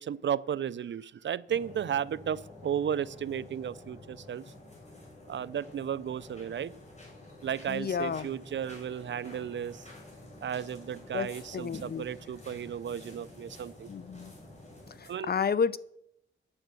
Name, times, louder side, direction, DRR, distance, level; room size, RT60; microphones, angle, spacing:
voice 1, 0.0-4.4 5.3-6.7 7.4-9.9 10.4-13.9 15.1-15.3, right 9 dB, 60° right, 19 dB, 0.4 m, -34 dB
sound 1, 1.5-15.1, left 1 dB, 35° left, 5.9 m, -50 dB
voice 2, 7.7-8.3 11.1-11.3 11.5-12.0 13.9-14.3 15.0-15.8, left 6 dB, 50° left, 17 dB, 0.5 m, -30 dB
9.7 x 7.5 x 7.6 m, 0.75 s
wide cardioid pair, 95°, 21 cm